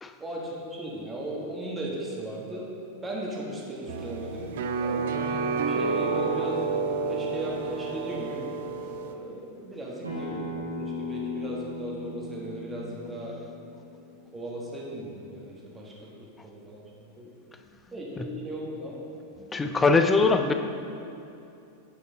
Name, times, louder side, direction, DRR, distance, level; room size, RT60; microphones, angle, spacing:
voice 1, 0.2-2.7 3.0-4.5 4.8-8.5 9.0-13.4 14.3-16.9 17.2-17.3 17.9-19.1, right 1 dB, 15° right, -4 dB, 1.4 m, -37 dB
sound 1, 3.9-9.2, right 4 dB, 55° right, 0.4 m, -29 dB
Acoustic guitar, 10.0-15.2, left 2 dB, 85° right, 1.5 m, -38 dB
voice 2, 19.5-20.5, left 4 dB, 15° left, 7 dB, 0.4 m, -22 dB
8.3 x 5.4 x 4.0 m, 2.6 s
figure-of-eight pair, 90°, 0 cm